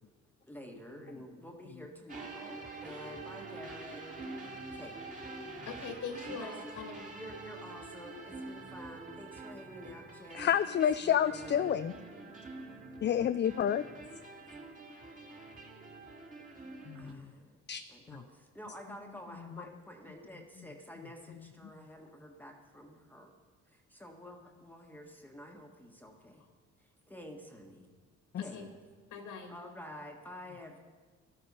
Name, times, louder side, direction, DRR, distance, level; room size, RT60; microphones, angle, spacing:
voice 1, 0.5-4.1 4.7-5.0 6.3-6.6 7.1-10.5 11.0-11.7 16.9-17.6 17.9-23.3 23.7-26.5 26.8-27.9 28.4-28.8 29.3-30.8, equal, 5° left, 1 dB, 1.5 m, -49 dB
sound 1, 2.1-17.1, right 3 dB, 25° right, 2.4 m, -46 dB
voice 2, 5.7-7.1 12.5-12.6 28.4-28.7 29.1-29.5, left 5 dB, 80° left, 4 dB, 2.2 m, -42 dB
voice 3, 10.3-11.9 13.0-13.9 16.9-17.2 17.7-17.8 18.1-18.2 28.3-28.4, left 9 dB, 40° left, 11 dB, 0.4 m, -29 dB
13.5 x 12.0 x 5.5 m, 1.4 s
cardioid pair, 90°, 30 cm